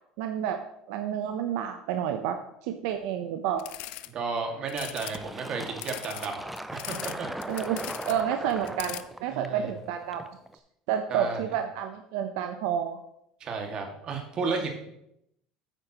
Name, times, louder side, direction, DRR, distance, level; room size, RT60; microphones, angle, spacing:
voice 1, 0.2-0.6 0.9-3.6 7.5-10.2 10.9-13.0, right 9 dB, 80° right, 7 dB, 0.7 m, -30 dB
sound 1, 3.6-4.1 4.7-5.2 5.8-7.1 7.4-8.2 8.5-9.0, left 16 dB, 70° left, 0.4 m, -39 dB
voice 2, 4.1-6.4 6.7-7.3 9.3-9.7 11.1-11.4 13.4-14.7, right 4 dB, 45° right, 3 dB, 1.9 m, -33 dB
Fill (with liquid), 5.1-10.5, right 1 dB, 5° right, 0.5 m, -39 dB
9.1 x 8.8 x 2.9 m, 0.79 s
supercardioid pair, 120°, 2 cm